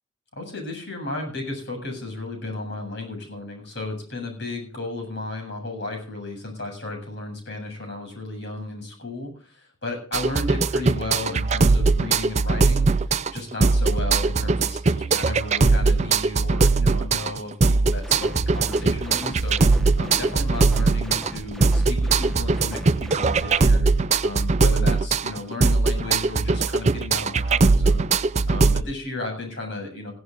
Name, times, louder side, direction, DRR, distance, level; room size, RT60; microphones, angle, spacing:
voice 1, 0.3-19.6 20.0-23.9 24.2-28.1 28.5-30.1, left 2 dB, 60° left, 3 dB, 7.6 m, -34 dB
sound 1, 10.1-28.8, right 3 dB, 35° right, 0.5 m, -20 dB
sound 2, 18.0-23.7, equal, ahead, 1.2 m, -37 dB
17.5 x 16.0 x 2.5 m, 0.43 s
head